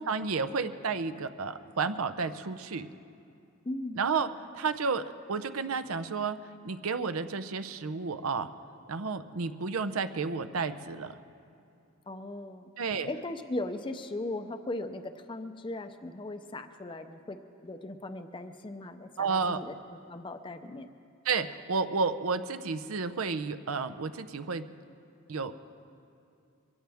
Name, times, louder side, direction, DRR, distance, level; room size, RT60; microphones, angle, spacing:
voice 1, 0.0-2.9 4.0-4.3 4.5-6.4 6.6-8.5 8.9-11.1 12.8-13.1 19.2-19.6 21.2-24.6 25.3-25.5, right 5 dB, 80° right, 11 dB, 0.6 m, -31 dB
voice 2, 3.7-4.0 12.1-12.7 13.1-19.8 20.1-20.9, left 2 dB, 25° left, 7 dB, 0.5 m, -38 dB
23.5 x 16.5 x 3.5 m, 2.6 s
head